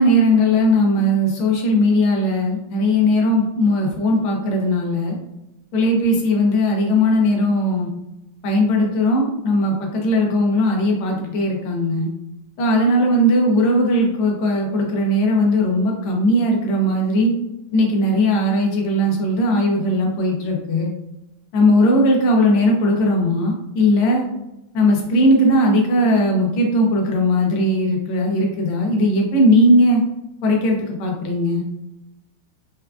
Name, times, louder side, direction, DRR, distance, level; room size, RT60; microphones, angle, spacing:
voice 1, 0.0-5.2 5.7-7.9 8.4-12.1 12.6-17.3 17.7-20.9 21.5-24.2 24.7-30.0 30.4-31.6, left 1 dB, 75° left, 1 dB, 1.6 m, -18 dB
4.7 x 2.3 x 2.3 m, 0.90 s
omnidirectional pair, 2.4 m